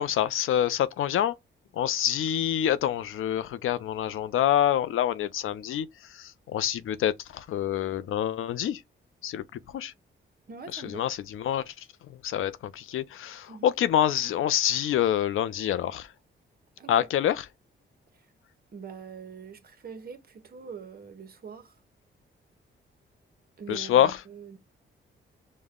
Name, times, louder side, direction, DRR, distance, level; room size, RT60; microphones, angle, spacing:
voice 1, 0.0-1.3 1.7-8.8 9.2-9.9 10.7-11.9 12.2-16.1 16.9-17.5 23.7-24.2, left 10 dB, 75° left, 0.5 m, -26 dB
voice 2, 10.5-11.1 13.5-13.7 16.8-17.1 18.1-18.3 18.7-21.8 23.6-24.6, right 6 dB, 45° right, 0.9 m, -43 dB
5.2 x 2.2 x 3.6 m
cardioid pair, 85°, 21 cm